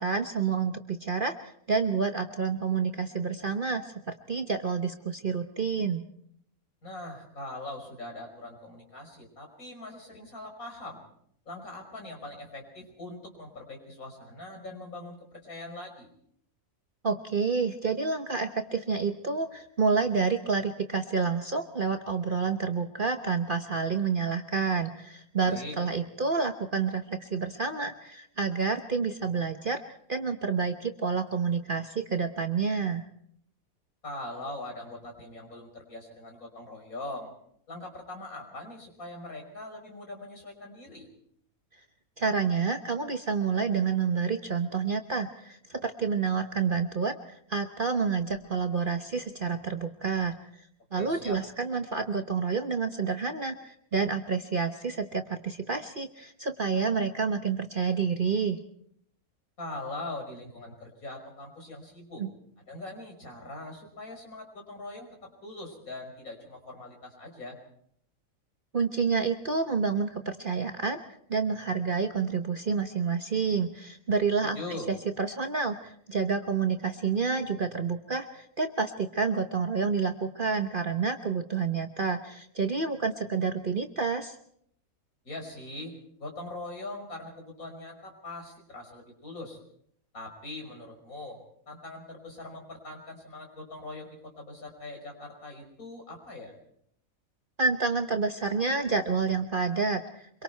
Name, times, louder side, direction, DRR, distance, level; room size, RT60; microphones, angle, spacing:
voice 1, 0.0-6.0 17.0-29.8 30.1-33.0 42.2-58.6 62.2-62.3 68.7-71.0 71.3-74.6 74.9-84.4 97.6-100.4, right 5 dB, 40° right, 6 dB, 1.1 m, -29 dB
voice 2, 6.8-11.0 11.5-16.1 25.4-25.7 34.0-37.3 37.7-41.1 51.0-51.4 59.6-62.2 62.7-65.1 65.4-67.6 74.4-74.9 85.2-89.6 90.1-91.4 91.7-96.5, left 2 dB, 75° left, 2 dB, 5.7 m, -41 dB
25.5 x 23.5 x 4.5 m, 0.67 s
omnidirectional pair, 1.5 m